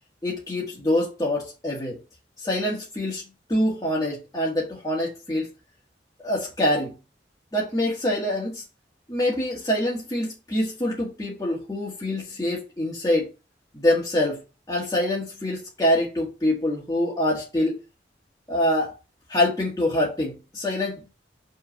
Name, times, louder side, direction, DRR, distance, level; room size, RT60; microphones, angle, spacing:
voice 1, 0.2-2.0 2.4-3.2 3.5-5.5 6.2-6.9 7.5-8.6 9.1-13.3 13.7-14.4 14.7-17.8 18.5-18.9 19.3-21.0, left 1 dB, 20° left, 1.7 m, -25 dB
5.5 x 3.8 x 5.5 m
head